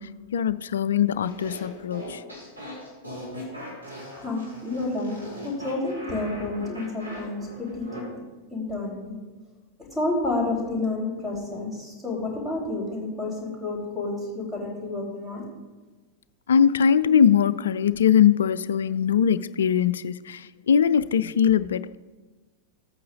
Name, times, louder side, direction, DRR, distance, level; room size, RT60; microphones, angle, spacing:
voice 1, 0.0-2.2 16.5-22.0, left 8 dB, 65° left, 0.3 m, -21 dB
sound 1, 1.2-8.0, equal, 90° right, 2.8 m, -40 dB
voice 2, 4.1-8.1 8.5-9.2 9.9-15.5, left 2 dB, 10° right, 3.5 m, -30 dB
15.0 x 8.6 x 2.5 m
figure-of-eight pair, 90°, 0 cm